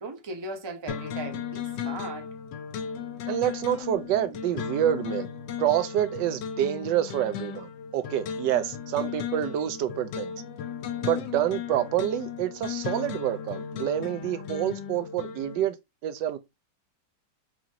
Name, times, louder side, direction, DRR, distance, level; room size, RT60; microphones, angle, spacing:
voice 1, 0.0-2.3, right 3 dB, 30° right, 0.5 m, -38 dB
sound 1, 0.9-15.6, left 8 dB, 85° left, 1.3 m, -36 dB
voice 2, 3.3-5.3 5.6-10.3 11.0-15.8 16.0-16.4, right 11 dB, 90° right, 1.2 m, -27 dB
5.0 x 2.5 x 2.8 m
omnidirectional pair, 1.9 m